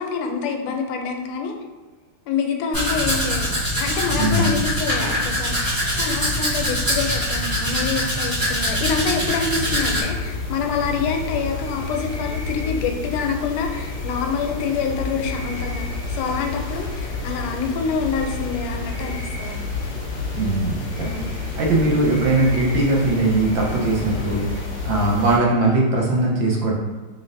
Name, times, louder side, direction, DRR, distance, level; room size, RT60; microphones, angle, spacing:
voice 1, 0.0-1.5 2.3-3.5 3.8-19.9 21.0-21.4, left 5 dB, 85° left, 3 dB, 1.5 m, -27 dB
Domestic sounds home sounds, 2.7-10.0, equal, 20° right, 0.5 m, -23 dB
voice 2, 4.1-4.5 20.3-21.1 21.6-26.7, right 2 dB, 70° right, -3 dB, 1.4 m, -20 dB
sound 1, 9.5-25.4, left 3 dB, 60° left, 1.0 m, -30 dB
3.7 x 3.6 x 2.5 m, 1.3 s
omnidirectional pair, 2.4 m